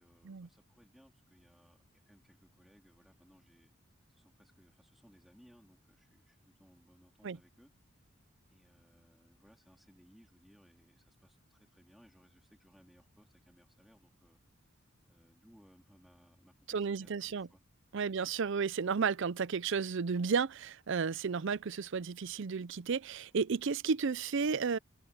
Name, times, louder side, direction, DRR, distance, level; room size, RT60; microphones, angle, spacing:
voice 1, 0.0-3.7 4.1-7.7 8.5-14.4 15.1-17.6 18.0-18.2, equal, ahead, 3.6 m, -64 dB
voice 2, 16.7-17.5 17.9-24.8, right 5 dB, 60° right, 0.5 m, -33 dB
open air
head